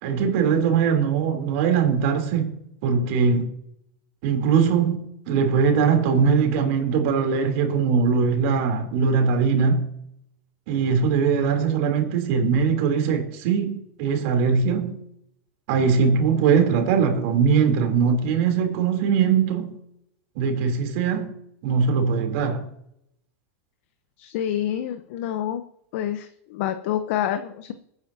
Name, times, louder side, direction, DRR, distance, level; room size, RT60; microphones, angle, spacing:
voice 1, 0.0-2.5 2.8-3.5 4.2-9.9 10.7-14.9 15.7-19.7 20.4-21.3 21.6-22.7, right 6 dB, 60° right, 3.5 m, -21 dB
voice 2, 24.2-25.6 25.9-27.7, left 10 dB, 65° left, 1.0 m, -27 dB
21.0 x 9.6 x 2.9 m
hypercardioid pair, 110°, 8 cm